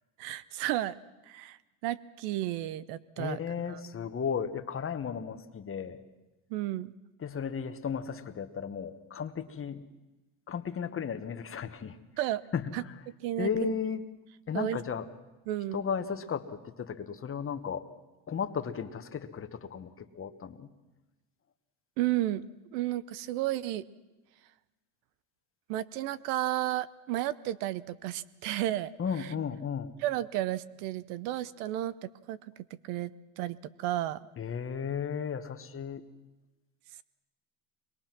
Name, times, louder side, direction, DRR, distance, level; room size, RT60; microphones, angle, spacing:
voice 1, 0.2-1.0 1.3-1.6 1.8-3.4 3.7-3.8 6.5-6.9 12.2-12.4 12.7-12.8 13.2-13.7 14.5-14.8 15.5-15.8 22.0-22.4 22.7-23.8 25.7-28.9 29.2-29.3 30.0-34.2, right 14 dB, 85° right, 18 dB, 0.9 m, -33 dB
voice 2, 3.2-6.0 7.2-9.9 10.5-12.0 12.5-12.8 13.4-14.0 14.5-15.1 15.7-17.9 18.3-20.7 29.0-30.0 34.4-36.0, left 7 dB, 30° left, 9 dB, 1.3 m, -34 dB
23.5 x 21.0 x 6.1 m, 1.1 s
supercardioid pair, 110°, 45 cm